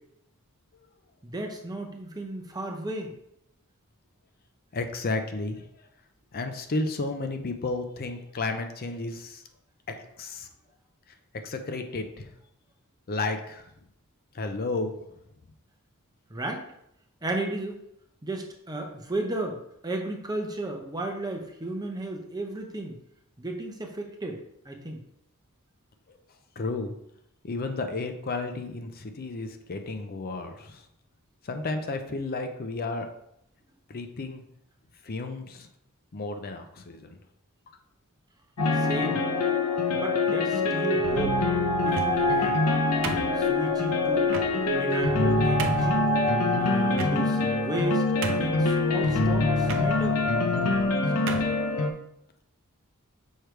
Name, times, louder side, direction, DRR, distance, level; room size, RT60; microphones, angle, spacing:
voice 1, 1.2-3.1 16.3-16.6 17.2-17.8 18.2-19.6 19.8-23.0 23.4-25.0 38.7-39.2 39.9-41.4 41.8-42.6 43.4-44.4 44.7-46.1 46.6-50.2, right 2 dB, 15° right, 2 dB, 0.7 m, -34 dB
voice 2, 4.7-5.7 6.3-9.4 9.9-10.5 11.4-12.3 13.1-13.6 14.3-14.9 26.6-26.9 27.4-30.8 31.4-33.1 33.9-34.4 35.0-35.7 36.1-37.1, left 3 dB, 45° left, 6 dB, 0.6 m, -32 dB
sound 1, 38.6-51.9, left 2 dB, 85° left, 0.7 m, -24 dB
sound 2, 41.8-42.3 43.0-43.7 44.3-44.5 45.1-45.2 45.6-45.9 46.9-47.5 47.8-47.9 48.2-48.7 49.6-49.9 50.7-50.9 51.3-51.6, right 4 dB, 60° right, 0.7 m, -33 dB
6.5 x 3.3 x 4.5 m, 0.76 s
head